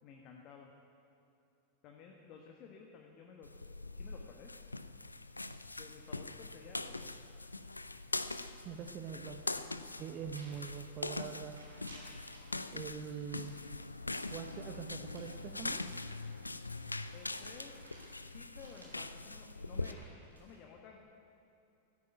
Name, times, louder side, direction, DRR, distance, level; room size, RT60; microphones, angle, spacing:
voice 1, 0.0-0.7 1.8-3.7 4.0-4.5 5.8-7.2 9.1-9.3 10.1-10.3 17.1-17.9 18.2-21.1, left 6 dB, 40° left, 1 dB, 1.3 m, -55 dB
sound 1, 3.4-19.9, left 2 dB, 80° left, 0.4 m, -42 dB
voice 2, 8.6-9.4 10.0-11.6 12.7-13.6 14.3-15.8, right 8 dB, 35° right, 4 dB, 0.8 m, -44 dB
sound 2, 10.3-11.2 11.4-12.7 13.1-18.2 18.5-20.6, right 1 dB, 80° right, 2.6 m, -58 dB
13.5 x 9.5 x 9.2 m, 2.7 s
figure-of-eight pair, 90°, 0 cm